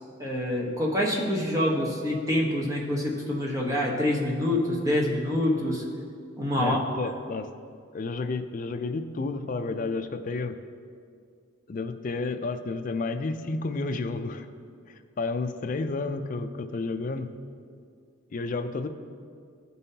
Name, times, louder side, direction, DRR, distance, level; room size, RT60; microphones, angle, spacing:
voice 1, 0.2-5.8 6.4-6.8, left 1 dB, 15° right, -3 dB, 1.0 m, -26 dB
voice 2, 6.6-7.5 7.9-10.6 11.7-14.5 15.2-17.3 18.3-18.9, left 3 dB, 40° left, 8 dB, 0.4 m, -31 dB
14.5 x 5.5 x 2.8 m, 2.2 s
head